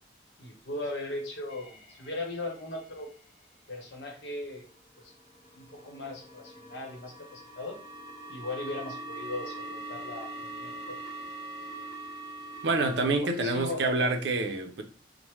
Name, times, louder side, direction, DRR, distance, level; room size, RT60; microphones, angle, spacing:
voice 1, 0.4-3.1 3.7-4.7 5.0-5.1 5.5-7.8 8.3-11.0 13.2-13.9, left 2 dB, 70° left, 0.9 m, -38 dB
sound 1, 1.5-3.3 4.1-13.2, right 2 dB, 30° left, 1.1 m, -43 dB
voice 2, 12.6-14.8, right 2 dB, 65° right, 0.5 m, -27 dB
3.1 x 2.1 x 3.1 m
head